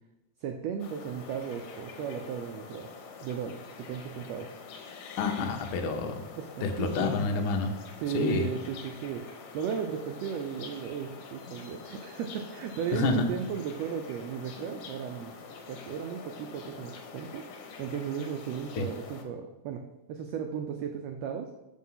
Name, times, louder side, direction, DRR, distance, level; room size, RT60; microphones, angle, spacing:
voice 1, 0.4-2.9 3.2-4.5 6.4-7.1 8.0-15.3 15.7-19.8 20.1-21.5, right 8 dB, 80° right, 5 dB, 1.5 m, -35 dB
sound 1, 0.8-19.2, left 5 dB, 70° left, 1.4 m, -46 dB
voice 2, 5.2-6.2 6.6-7.8 8.1-8.5 12.9-13.3 18.7-18.9, left 4 dB, 85° left, 3 dB, 1.1 m, -28 dB
6.2 x 4.6 x 5.6 m, 1.0 s
omnidirectional pair, 3.5 m